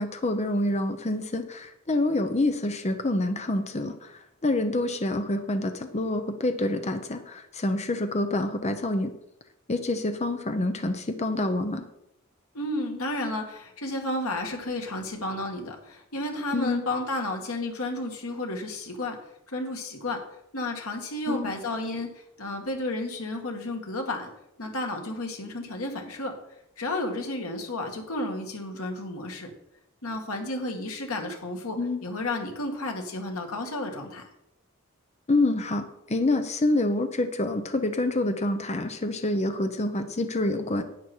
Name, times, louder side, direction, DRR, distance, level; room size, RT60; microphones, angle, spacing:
voice 1, 0.0-9.1 9.7-11.9 16.5-16.9 21.3-21.6 31.8-32.0 35.3-40.8, left 2 dB, 30° left, 8 dB, 0.8 m, -27 dB
voice 2, 12.5-19.2 19.5-20.2 20.5-24.3 24.6-26.3 26.8-29.5 30.0-34.3, left 2 dB, 90° left, 3 dB, 2.1 m, -32 dB
11.0 x 9.0 x 4.5 m, 0.81 s
head